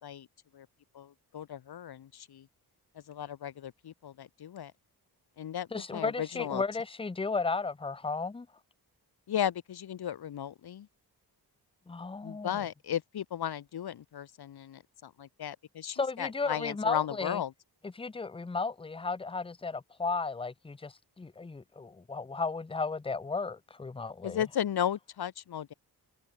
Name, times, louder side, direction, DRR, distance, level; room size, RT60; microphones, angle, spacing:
voice 1, 0.9-2.5 2.9-4.7 5.4-6.6 9.3-10.9 12.2-17.5 24.2-25.7, left 10 dB, 70° left, 1.3 m, -35 dB
voice 2, 5.7-8.5 11.9-12.6 15.9-17.4 17.8-24.6, left 4 dB, 15° left, 0.6 m, -34 dB
wide cardioid pair, 170°, 40 cm